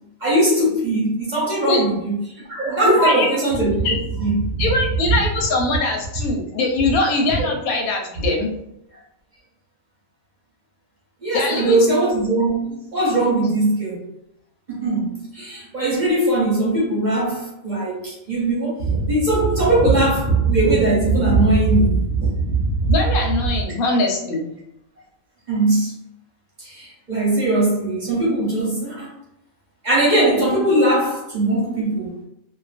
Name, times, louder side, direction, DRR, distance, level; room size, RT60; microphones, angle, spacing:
voice 1, 0.2-2.1 2.5-3.9 4.2-4.6 11.2-14.0 14.7-22.9 25.5-25.9 26.6-29.1 29.8-32.1, right 2 dB, 40° right, -6 dB, 0.8 m, -20 dB
voice 2, 2.8-3.3 3.8-3.9 4.6-8.5 11.3-12.0 22.9-24.5, left 2 dB, 90° left, 1 dB, 1.1 m, -21 dB
2.5 x 2.3 x 2.4 m, 0.80 s
omnidirectional pair, 1.5 m